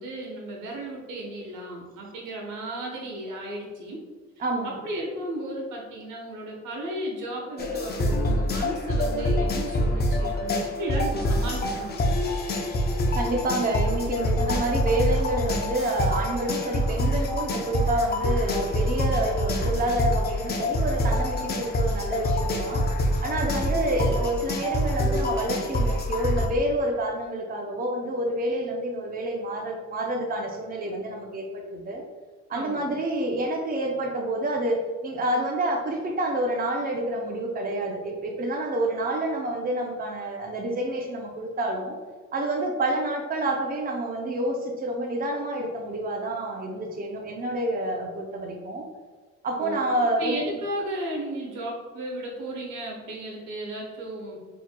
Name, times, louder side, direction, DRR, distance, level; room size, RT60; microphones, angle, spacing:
voice 1, 0.0-4.0 4.6-12.0 32.5-32.9 49.6-49.9 50.2-54.4, right 1 dB, 85° right, -1 dB, 1.0 m, -34 dB
voice 2, 4.4-4.8 13.1-22.8 23.2-32.0 32.5-42.0 42.3-48.9 49.4-50.4, right 1 dB, 30° right, 2 dB, 0.6 m, -28 dB
sound 1, 7.6-26.5, left 1 dB, 35° left, 0.6 m, -26 dB
4.5 x 3.0 x 2.2 m, 1.4 s
cardioid pair, 90°, 30 cm